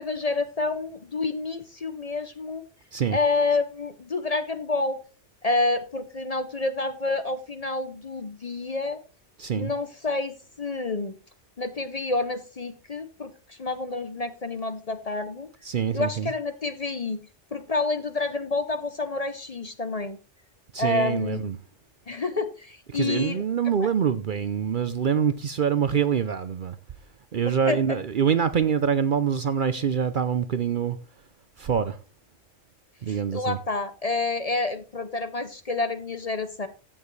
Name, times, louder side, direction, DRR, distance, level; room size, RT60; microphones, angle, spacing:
voice 1, 0.0-2.6 3.1-5.0 5.4-9.0 9.5-11.2 11.6-15.5 15.9-17.2 17.5-20.2 20.8-21.5 22.1-23.4 23.8-23.9 27.5-27.8 33.1-36.7, left 3 dB, 35° left, 0.7 m, -28 dB
voice 2, 9.4-9.7 15.6-16.3 20.7-21.6 22.9-26.8 27.3-31.0 31.6-32.0 33.0-33.6, right 7 dB, 55° right, 0.7 m, -25 dB
15.0 x 7.4 x 3.2 m
omnidirectional pair, 1.2 m